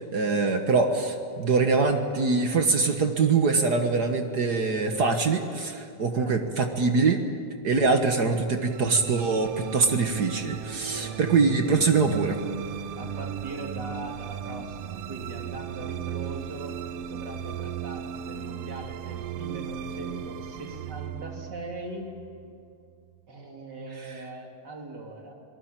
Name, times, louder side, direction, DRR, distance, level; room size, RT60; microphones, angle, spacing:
voice 1, 0.0-7.2 7.6-12.4, right 4 dB, 55° right, 5 dB, 1.1 m, -23 dB
sound 1, 8.5-22.9, right 9 dB, 70° right, 1.5 m, -36 dB
voice 2, 13.0-16.7 17.1-22.1 23.3-25.3, right 2 dB, 35° right, 1 dB, 3.5 m, -40 dB
26.0 x 19.0 x 9.0 m, 2.4 s
omnidirectional pair, 3.6 m